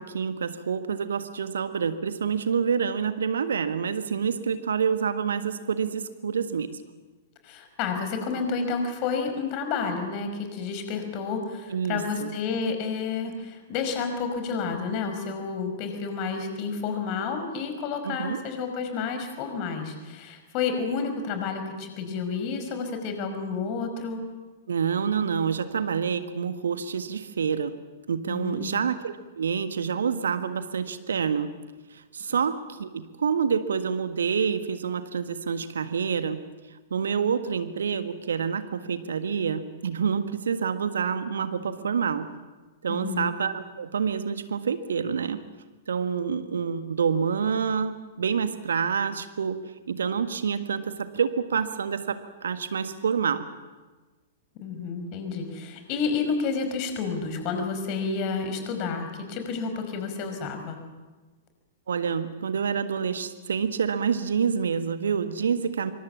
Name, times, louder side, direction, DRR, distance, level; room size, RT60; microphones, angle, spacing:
voice 1, 0.0-6.8 11.7-12.3 18.0-18.4 24.7-27.8 28.1-31.5 31.9-36.4 36.9-42.3 42.8-45.4 45.9-49.6 49.9-53.5 61.9-65.9, right 6 dB, 65° right, 10 dB, 1.6 m, -27 dB
voice 2, 7.4-24.2 28.3-28.8 42.9-43.3 54.6-60.8, left 5 dB, 35° left, 6 dB, 5.6 m, -30 dB
26.5 x 25.0 x 7.4 m, 1.3 s
figure-of-eight pair, 105°, 0 cm